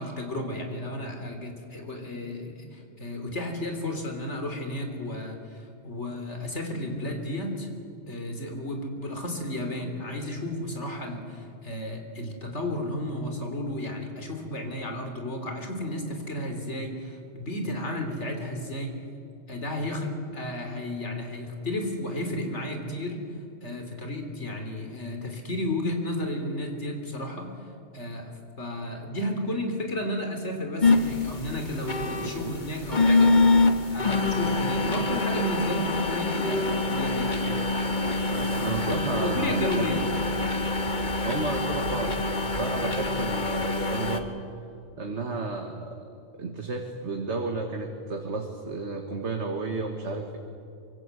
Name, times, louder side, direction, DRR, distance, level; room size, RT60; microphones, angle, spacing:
voice 1, 0.0-7.7 8.1-19.0 19.5-23.2 23.6-27.6 27.9-33.4 33.9-37.4 38.3-40.1, left 1 dB, 80° left, 4 dB, 3.8 m, -33 dB
sound 1, 30.8-44.2, left 3 dB, 45° left, 1.7 m, -25 dB
voice 2, 32.2-32.5 38.6-39.9 41.2-44.4 45.0-46.0 46.3-50.4, right 3 dB, 80° right, 3 dB, 2.1 m, -32 dB
25.0 x 24.0 x 8.2 m, 2.6 s
omnidirectional pair, 1.2 m